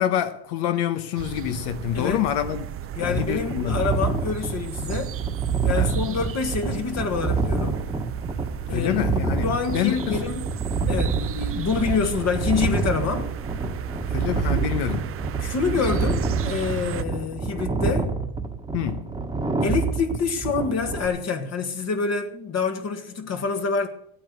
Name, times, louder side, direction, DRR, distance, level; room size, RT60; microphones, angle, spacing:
voice 1, 0.0-2.6 3.0-3.8 5.7-5.9 8.7-9.5 9.7-10.2 14.1-15.0 15.8-15.9 18.7-19.1, left 11 dB, 65° left, 1.2 m, -26 dB
sound 1, 1.2-17.0, right 10 dB, 30° right, 0.6 m, -35 dB
sound 2, 2.9-21.1, right 4 dB, 10° right, 1.4 m, -27 dB
voice 2, 3.0-5.2 5.6-7.8 8.7-9.0 9.4-10.5 10.9-13.3 14.5-14.7 15.4-18.1 19.6-23.9, left 5 dB, 35° left, 1.6 m, -27 dB
14.5 x 8.7 x 6.7 m
supercardioid pair, 115°, 43 cm